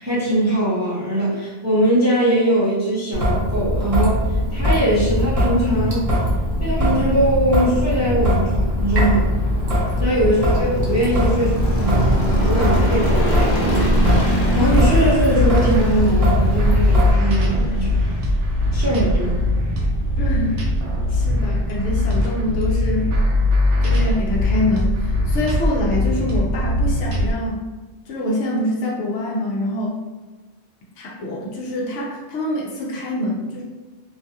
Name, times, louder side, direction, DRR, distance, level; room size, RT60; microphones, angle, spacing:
voice 1, 0.0-6.1 6.6-9.3 10.0-13.5 14.5-18.0 18.7-19.4, right 1 dB, 25° right, -8 dB, 0.4 m, -21 dB
Traffic noise roadway noise / Drip / Trickle dribble, 3.1-17.1, equal, 45° right, 0.8 m, -20 dB
sound 1, 4.3-23.5, equal, 55° left, 0.7 m, -30 dB
sound 2, 14.2-27.3, left 1 dB, 75° right, 0.9 m, -21 dB
voice 2, 20.2-20.5 21.1-23.1 23.8-27.7 28.1-30.0 31.0-33.6, left 1 dB, 80° left, -3 dB, 1.0 m, -25 dB
2.6 x 2.3 x 2.7 m, 1.2 s
omnidirectional pair, 1.2 m